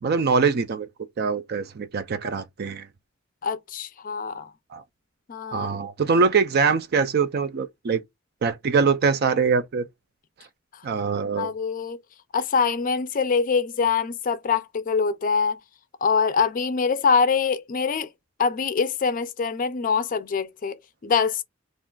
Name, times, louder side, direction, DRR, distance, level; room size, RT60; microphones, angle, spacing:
voice 1, 0.0-0.9 1.2-2.9 4.7-4.8 5.5-8.0 8.4-9.9 10.8-11.5, right 5 dB, 50° right, 0.4 m, -23 dB
voice 2, 3.4-4.5 5.3-5.7 11.4-12.0 12.3-15.6 16.0-18.1 18.4-20.8 21.0-21.4, left 5 dB, 45° left, 0.4 m, -24 dB
2.5 x 2.3 x 3.7 m
head